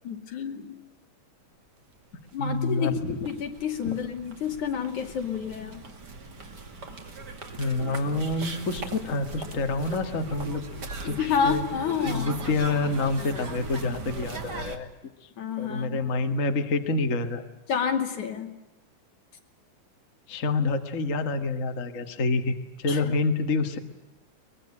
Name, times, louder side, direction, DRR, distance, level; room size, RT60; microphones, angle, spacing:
voice 1, 0.0-0.7 2.3-5.8 11.0-12.3 15.4-16.0 17.7-18.5 22.9-23.0, left 7 dB, 70° left, 5 dB, 3.9 m, -29 dB
sound 1, 2.0-2.1 2.2-14.8, right 3 dB, 35° right, 2.7 m, -39 dB
voice 2, 2.4-3.2 3.9-4.0 7.6-10.7 11.1-11.6 12.1-14.9 15.2-15.3 15.6-17.4 20.3-23.8, left 3 dB, 30° left, 6 dB, 1.8 m, -27 dB
23.0 x 22.0 x 10.0 m, 0.96 s
omnidirectional pair, 3.5 m